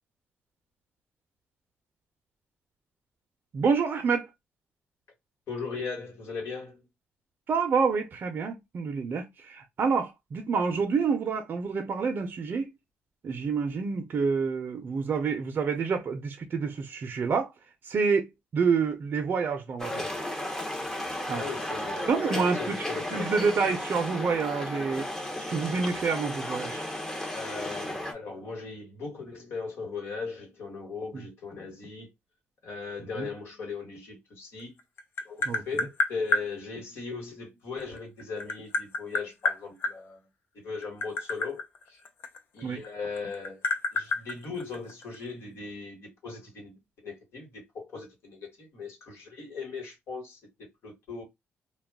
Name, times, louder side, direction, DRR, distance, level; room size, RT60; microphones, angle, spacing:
voice 1, 3.5-4.3 7.5-12.7 13.2-17.5 17.9-18.2 18.5-20.0 21.3-21.4 22.1-22.6 23.1-25.1 25.5-26.8 31.1-31.2 33.2-33.3 35.5-35.6 42.6-42.8, right 5 dB, 50° right, 0.5 m, -28 dB
voice 2, 5.5-6.8 21.2-23.5 27.3-32.1 32.6-34.7 35.2-40.2 40.5-42.0 42.5-43.6 43.9-51.2, left 4 dB, 75° left, 1.3 m, -38 dB
sound 1, 19.8-28.1, left 1 dB, 15° left, 0.7 m, -34 dB
Tap, 34.6-36.5 37.8-39.9 40.7-42.9 43.2-45.2, left 3 dB, 60° left, 0.5 m, -29 dB
2.3 x 2.2 x 3.4 m
cardioid pair, 105°, 4 cm